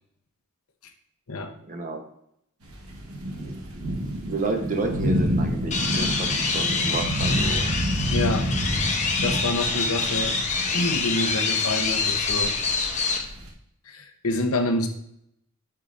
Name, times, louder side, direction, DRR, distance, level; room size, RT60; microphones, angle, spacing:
voice 1, 1.7-2.0 4.3-7.8 9.7-10.2, right 2 dB, 35° right, 4 dB, 1.0 m, -31 dB
sound 1, 2.6-13.5, equal, 75° right, 1.4 m, -29 dB
sound 2, 5.7-13.2, left 4 dB, 35° left, 0.9 m, -26 dB
voice 2, 8.1-8.5 9.2-10.4 10.7-12.6 13.8-14.9, left 2 dB, 75° left, 5 dB, 0.9 m, -27 dB
10.0 x 5.7 x 2.6 m, 0.75 s
head